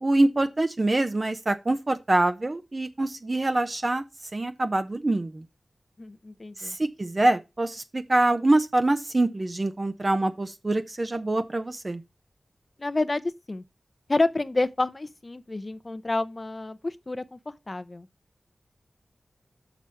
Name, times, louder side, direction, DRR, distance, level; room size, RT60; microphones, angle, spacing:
voice 1, 0.0-4.0 4.3-5.4 6.8-12.0, right 2 dB, 35° right, 0.8 m, -25 dB
voice 2, 6.0-6.7 12.8-13.2 13.5-13.6 14.1-17.4 17.7-18.1, left 2 dB, 35° left, 0.6 m, -28 dB
6.1 x 6.1 x 5.6 m
wide cardioid pair, 85°, 0 cm